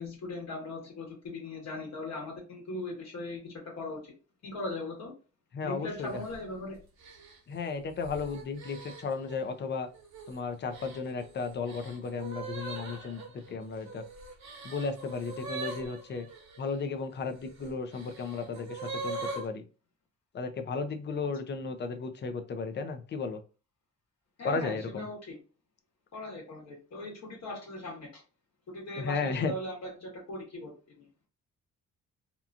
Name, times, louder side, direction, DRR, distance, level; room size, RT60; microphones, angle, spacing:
voice 1, 0.0-4.0 4.4-5.1 5.6-6.8 24.4-25.4 26.1-28.2 28.7-31.1, left 2 dB, 60° left, 1.3 m, -39 dB
voice 2, 5.5-6.1 7.5-9.9 10.3-14.0 14.6-16.3 16.6-19.6 20.3-23.4 24.4-25.1 29.0-29.5, left 4 dB, 35° left, 0.5 m, -34 dB
sound 1, 6.0-6.4 7.0-9.4 9.9-10.3 10.7-16.6 17.4-19.5, right 3 dB, 65° right, 1.0 m, -42 dB
2.8 x 2.3 x 2.5 m
cardioid pair, 90°, 30 cm